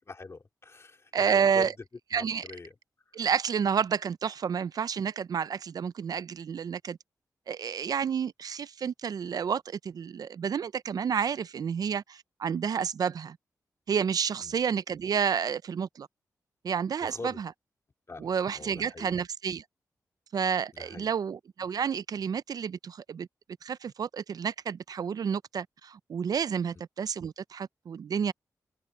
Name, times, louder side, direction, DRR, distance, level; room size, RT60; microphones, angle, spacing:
voice 1, 0.1-1.7 2.1-2.7 14.4-14.5 17.0-17.4 18.1-19.2 20.7-21.1, left 3 dB, 40° left, 3.3 m, -43 dB
voice 2, 1.1-1.7 2.1-2.4 3.1-7.0 7.5-13.4 13.9-16.1 16.6-17.5 18.2-19.6 20.3-23.3 23.6-28.3, right 7 dB, 65° right, 0.5 m, -30 dB
cardioid pair, 65°, 7 cm